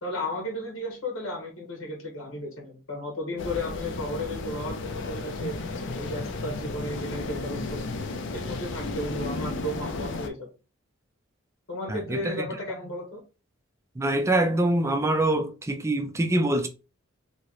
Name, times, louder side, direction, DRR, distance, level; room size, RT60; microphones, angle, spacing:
voice 1, 0.0-5.6 6.0-10.5 11.7-13.2, left 1 dB, 85° left, 1.1 m, -34 dB
sound 1, 3.4-10.3, left 3 dB, 60° left, 0.5 m, -33 dB
voice 2, 11.9-12.4 14.0-16.7, right 1 dB, 15° right, 0.4 m, -24 dB
2.9 x 2.8 x 2.9 m
head